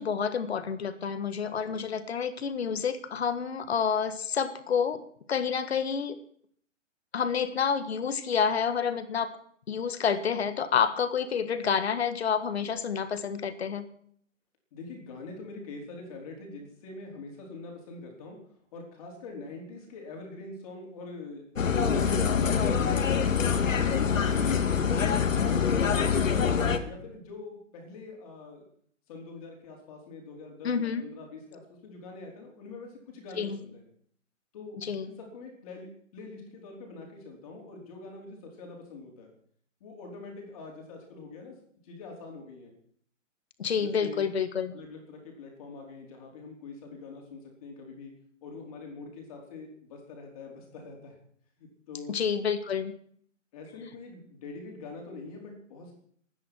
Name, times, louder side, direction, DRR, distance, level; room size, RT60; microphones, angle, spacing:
voice 1, 0.0-5.0 5.3-6.2 7.1-9.3 9.7-13.8 30.6-31.0 33.3-33.6 34.8-35.1 43.6-44.7 52.1-52.9, left 6 dB, 55° left, 11 dB, 1.7 m, -29 dB
voice 2, 1.5-1.8 14.7-18.4 18.7-21.4 21.9-26.5 26.8-28.6 29.1-33.8 34.5-39.3 39.8-41.5 41.8-42.7 43.8-44.3 44.7-48.1 48.4-51.1 51.6-52.2 53.5-55.9, left 3 dB, 30° left, 1 dB, 4.7 m, -44 dB
sound 1, 21.6-26.8, left 6 dB, 85° left, 2.2 m, -25 dB
22.5 x 10.0 x 6.4 m, 0.62 s
hypercardioid pair, 170°, 38 cm